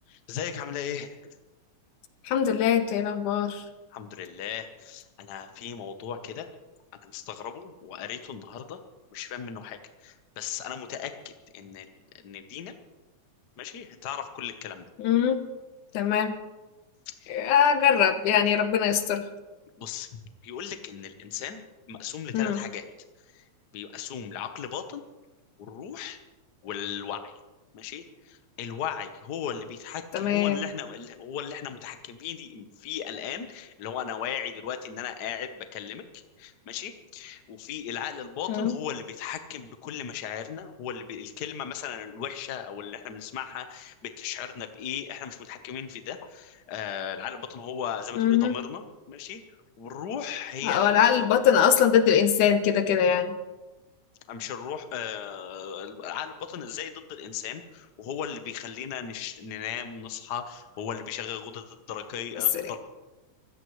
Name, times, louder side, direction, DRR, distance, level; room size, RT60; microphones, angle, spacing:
voice 1, 0.1-1.3 3.9-6.5 7.0-8.8 9.1-11.9 12.2-12.7 13.6-14.9 17.2-17.4 19.8-21.6 21.9-22.8 23.3-23.4 23.7-25.0 25.6-26.2 26.6-27.3 27.7-49.4 49.8-51.2 54.3-62.8, left 8 dB, 60° left, 7 dB, 1.1 m, -37 dB
voice 2, 2.3-3.6 15.0-15.4 15.9-16.3 17.3-19.3 22.3-22.6 30.1-30.6 38.5-38.8 48.2-48.6 50.6-53.4 62.5-62.7, left 8 dB, 90° left, 9 dB, 2.6 m, -22 dB
24.5 x 16.0 x 3.2 m, 1.1 s
omnidirectional pair, 3.5 m